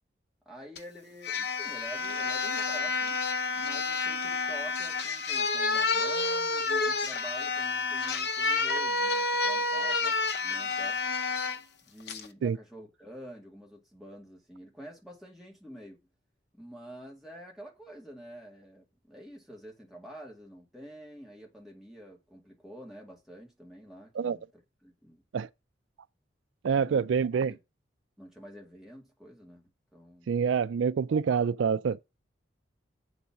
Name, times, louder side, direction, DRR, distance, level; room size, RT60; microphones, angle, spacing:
voice 1, 0.5-3.2 3.5-11.0 11.8-16.0 16.5-24.4 24.8-25.2 26.7-27.6 28.2-29.6 29.9-30.3, equal, ahead, 2.1 m, -48 dB
sound 1, 0.8-0.9 1.2-11.6 12.1-12.3, left 3 dB, 60° left, 0.8 m, -29 dB
voice 2, 26.6-27.5 30.3-32.2, right 6 dB, 80° right, 0.4 m, -27 dB
7.8 x 4.2 x 5.9 m
head